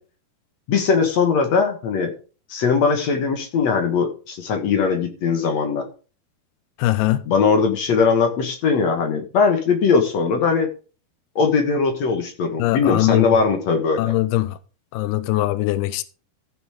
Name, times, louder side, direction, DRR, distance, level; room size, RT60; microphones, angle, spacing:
voice 1, 0.7-2.1 2.5-5.8 7.3-10.7 11.4-14.1, left 5 dB, 55° left, 2.3 m, -20 dB
voice 2, 6.8-7.2 12.6-13.3 14.0-14.6 14.9-16.0, left 16 dB, 85° left, 2.7 m, -21 dB
15.5 x 5.4 x 5.1 m
omnidirectional pair, 4.5 m